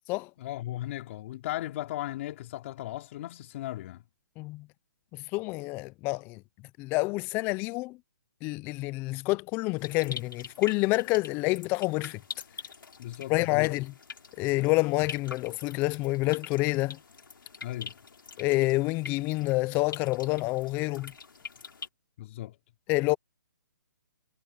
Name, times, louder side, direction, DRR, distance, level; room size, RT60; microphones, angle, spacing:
voice 1, 0.4-4.0 13.0-13.7 17.6-18.0 22.2-22.6, left 15 dB, 40° left, 3.1 m, -36 dB
voice 2, 5.1-6.4 6.8-8.0 8.4-12.2 13.3-13.9 14.4-17.0 18.4-21.1 22.9-23.2, left 22 dB, 20° left, 0.4 m, -28 dB
sound 1, 9.8-21.9, left 5 dB, 85° left, 2.7 m, -45 dB
hypercardioid pair, 150°, 11 cm